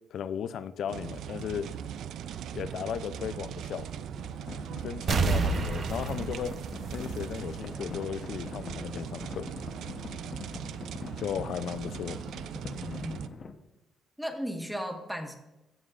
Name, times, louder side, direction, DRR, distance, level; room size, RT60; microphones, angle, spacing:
voice 1, 0.1-1.7 2.5-3.9 4.8-6.5 6.9-9.5 11.1-12.2, left 8 dB, 70° left, 13 dB, 0.5 m, -36 dB
sound 1, 0.9-13.3, right 9 dB, 75° right, 0.4 m, -40 dB
sound 2, 4.1-13.5, left 4 dB, 45° left, 0.9 m, -44 dB
sound 3, 5.1-7.7 8.0-8.1, right 4 dB, 55° right, 0.9 m, -29 dB
voice 2, 12.8-13.3 14.2-15.4, equal, ahead, 4 dB, 1.6 m, -36 dB
15.0 x 7.3 x 2.5 m, 0.99 s
cardioid pair, 90°, 0 cm